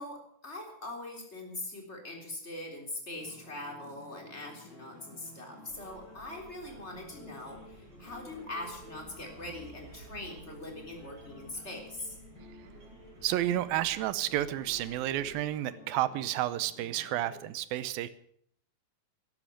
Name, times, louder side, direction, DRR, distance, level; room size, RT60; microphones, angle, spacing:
voice 1, 0.0-12.2, left 1 dB, 15° left, 3 dB, 3.3 m, -42 dB
sound 1, 3.2-17.5, left 2 dB, 35° left, 7.8 m, -53 dB
sound 2, 5.7-15.4, right 3 dB, 50° right, 5.6 m, -55 dB
voice 2, 13.2-18.1, right 13 dB, 75° right, 15 dB, 2.3 m, -31 dB
13.5 x 11.5 x 8.4 m, 0.65 s
omnidirectional pair, 4.7 m